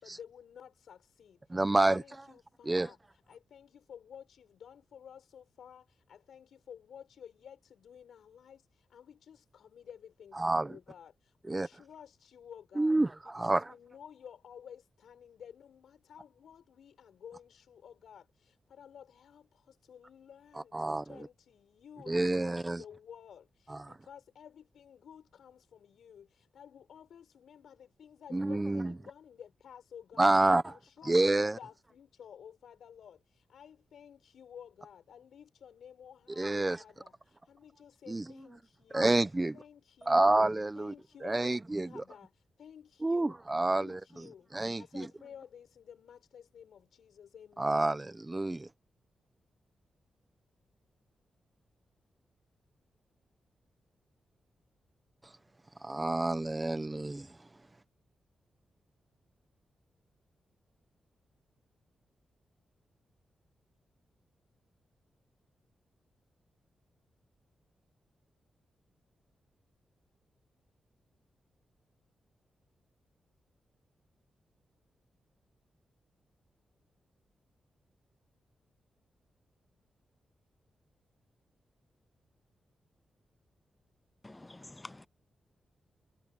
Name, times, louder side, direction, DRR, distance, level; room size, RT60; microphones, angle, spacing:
voice 1, 0.0-3.0 3.3-13.0 13.2-30.3 30.6-39.2 39.5-40.4 40.7-43.4 43.7-48.1, left 8 dB, 80° left, 6.3 m, -53 dB
voice 2, 1.5-2.0 2.7-2.9 10.4-10.8 11.5-11.7 12.8-13.6 20.7-21.3 22.1-22.8 28.3-28.9 30.2-30.7 31.0-31.6 36.4-36.8 38.1-38.2 38.9-39.6 40.1-40.9 41.2-42.0 43.0-44.0 44.5-45.1 47.6-48.7 55.8-57.3, right 2 dB, 15° right, 1.1 m, -28 dB
voice 3, 84.2-85.1, left 2 dB, 15° left, 0.6 m, -48 dB
wide cardioid pair, 155°, 0 cm